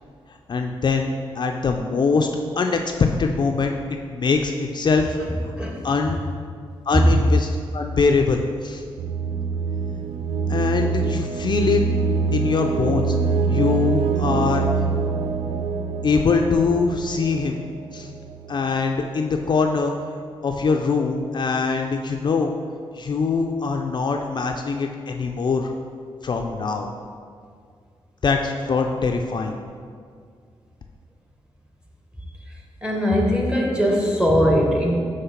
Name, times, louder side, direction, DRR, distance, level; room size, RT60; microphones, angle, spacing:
voice 1, 0.5-2.3 2.6-2.8 3.2-3.7 4.1-5.2 5.8-6.2 6.9-8.8 10.5-11.8 12.3-13.2 13.5-14.7 16.0-17.6 17.9-18.1 18.5-19.9 20.4-22.5 22.9-25.7 26.2-26.9 28.2-29.6, left 4 dB, 45° left, 3 dB, 0.4 m, -22 dB
voice 2, 5.6-5.9 6.9-7.1 32.8-35.0, equal, 10° right, 0 dB, 1.0 m, -19 dB
sound 1, 9.0-18.8, right 5 dB, 80° right, 0.4 m, -25 dB
5.6 x 3.2 x 5.7 m, 2.1 s
cardioid pair, 80°, 10 cm